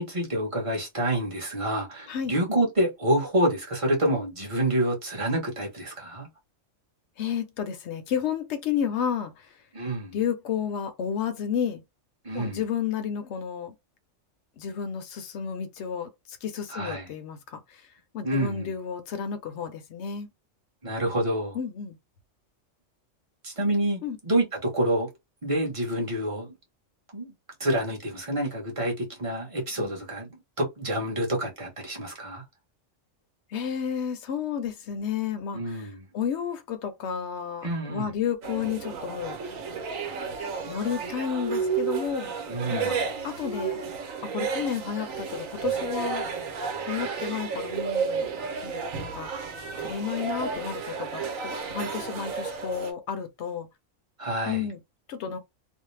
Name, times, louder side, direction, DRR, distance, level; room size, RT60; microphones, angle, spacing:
voice 1, 0.0-6.3 9.7-10.2 12.2-12.6 16.7-17.1 18.2-18.7 20.8-21.6 23.4-25.1 25.4-26.5 27.1-27.3 27.6-32.4 35.5-36.1 37.6-38.1 42.5-43.0 54.2-54.7, right 1 dB, 30° right, 0.8 m, -28 dB
voice 2, 7.2-9.5 10.1-11.8 12.3-13.7 14.6-17.8 18.1-20.3 21.5-22.0 24.0-24.2 29.8-30.0 33.5-39.4 40.7-42.3 42.7-43.0 43.2-43.8 44.2-46.2 46.8-48.3 48.6-49.3 49.8-53.7 54.5-54.8 55.1-55.4, left 8 dB, 65° left, 0.8 m, -31 dB
sound 1, 38.4-52.9, right 6 dB, 80° right, 1.1 m, -32 dB
2.5 x 2.0 x 3.1 m
omnidirectional pair, 1.4 m